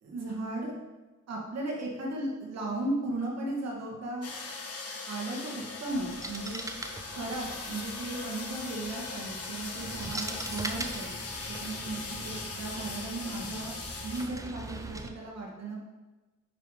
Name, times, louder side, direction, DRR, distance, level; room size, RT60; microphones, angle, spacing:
voice 1, 0.0-0.7 1.3-4.3 5.1-6.7 7.2-11.1 11.5-13.8 14.0-15.8, right 2 dB, 60° right, -2 dB, 2.0 m, -36 dB
sound 1, 4.2-14.3, left 4 dB, 50° left, 1.4 m, -40 dB
sound 2, 5.9-15.1, right 2 dB, 10° right, 0.7 m, -42 dB
9.4 x 3.5 x 4.9 m, 1.2 s
cardioid pair, 90°, 30 cm